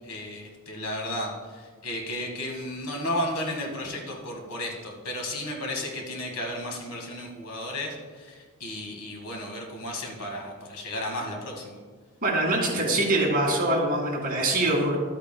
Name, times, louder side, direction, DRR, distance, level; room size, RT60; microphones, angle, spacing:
voice 1, 0.0-11.8, left 1 dB, 90° left, 1 dB, 1.8 m, -33 dB
voice 2, 12.2-15.0, right 2 dB, 45° right, -2 dB, 2.1 m, -24 dB
12.5 x 8.3 x 2.3 m, 1.5 s
head